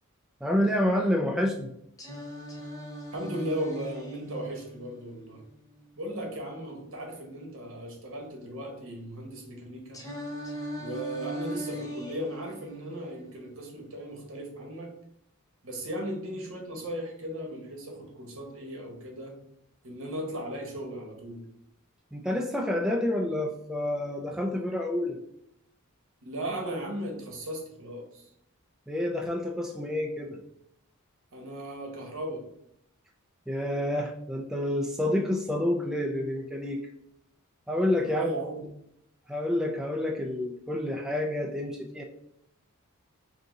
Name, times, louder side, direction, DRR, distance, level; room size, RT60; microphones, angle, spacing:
voice 1, 0.4-1.7 22.1-25.2 28.9-30.4 33.5-36.8 37.7-38.3 39.3-42.0, left 1 dB, 5° right, 1 dB, 0.3 m, -28 dB
Singing, 2.0-6.0 9.9-14.0, equal, 15° left, 0.8 m, -40 dB
voice 2, 3.1-5.4 6.0-10.0 10.8-14.9 15.6-19.3 19.8-21.5 26.2-28.3 31.3-32.4 38.0-38.6, right 1 dB, 65° right, 2 dB, 1.1 m, -36 dB
3.6 x 2.8 x 3.8 m, 0.75 s
head